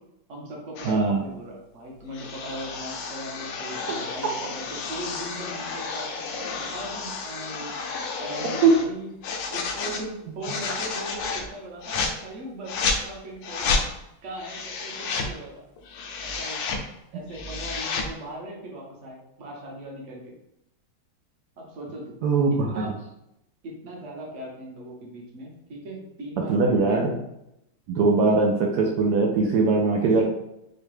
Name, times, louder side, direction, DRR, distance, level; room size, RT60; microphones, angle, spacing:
voice 1, 0.3-7.8 8.2-9.1 9.5-12.7 13.0-13.8 14.2-15.6 16.2-16.8 17.1-20.3 21.6-22.2 22.7-22.9 23.6-27.0 30.0-30.2, right 1 dB, 50° right, -2 dB, 1.0 m, -39 dB
sound 1, 0.8-1.0 2.1-8.9 9.2-10.0 10.4-11.5 11.8-12.1 12.7-13.0 13.4-13.8 14.4-15.3 15.8-16.8 17.2-18.1, left 4 dB, 70° left, 1.2 m, -31 dB
voice 2, 0.8-1.2 8.6-8.7 22.2-22.7 26.5-27.1 27.9-30.2, right 4 dB, 85° right, -1 dB, 0.8 m, -20 dB
4.8 x 2.2 x 3.1 m, 0.83 s
omnidirectional pair, 2.3 m